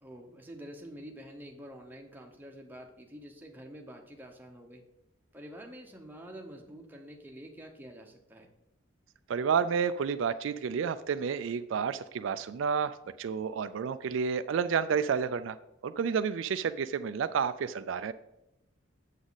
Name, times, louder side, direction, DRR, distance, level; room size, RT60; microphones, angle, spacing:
voice 1, 0.0-4.8 5.3-8.5, equal, 10° right, 2 dB, 0.9 m, -47 dB
voice 2, 9.3-15.6 15.8-18.1, right 6 dB, 75° right, 12 dB, 0.3 m, -30 dB
7.9 x 7.2 x 4.0 m, 0.88 s
head